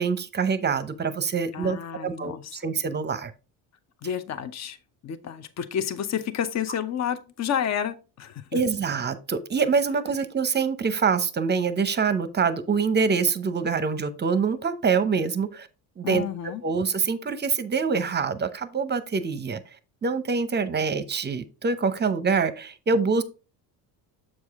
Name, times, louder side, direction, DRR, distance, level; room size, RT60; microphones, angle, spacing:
voice 1, 0.0-3.3 8.5-15.7 16.0-16.2 16.6-19.6 20.0-23.2, right 5 dB, 25° right, 12 dB, 0.7 m, -25 dB
voice 2, 1.5-2.6 4.0-4.8 5.0-8.6 16.0-16.6, left 8 dB, 40° left, 12 dB, 0.8 m, -30 dB
7.4 x 4.8 x 3.6 m, 0.32 s
cardioid pair, 105°, 42 cm